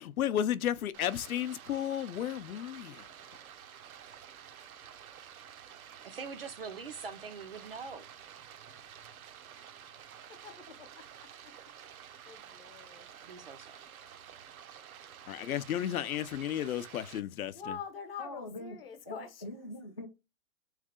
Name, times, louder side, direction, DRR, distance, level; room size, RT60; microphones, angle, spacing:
voice 1, 0.0-3.1 15.3-17.8, left 10 dB, 75° left, 0.6 m, -33 dB
Stream, 0.9-17.2, right 9 dB, 75° right, 0.8 m, -51 dB
voice 2, 6.0-8.1 13.2-13.8, right 5 dB, 45° right, 0.4 m, -43 dB
voice 3, 10.3-11.3 12.3-13.1 17.5-19.4, left 6 dB, 40° left, 0.9 m, -45 dB
voice 4, 18.2-18.8 19.0-20.1, left 2 dB, 25° left, 0.4 m, -42 dB
3.7 x 3.2 x 3.6 m
hypercardioid pair, 170°, 43 cm